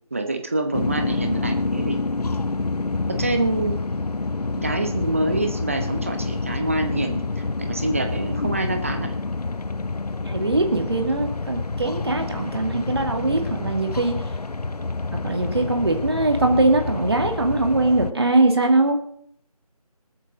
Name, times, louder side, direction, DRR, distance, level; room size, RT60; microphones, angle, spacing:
voice 1, 0.1-2.0 3.1-3.8 4.6-9.1, right 2 dB, 20° right, 6 dB, 0.9 m, -26 dB
sound 1, 0.7-18.1, left 3 dB, 80° left, 0.8 m, -28 dB
voice 2, 10.3-14.3 15.1-19.0, right 2 dB, 40° right, 4 dB, 2.1 m, -21 dB
27.0 x 9.2 x 3.8 m, 0.64 s
figure-of-eight pair, 170°, 20 cm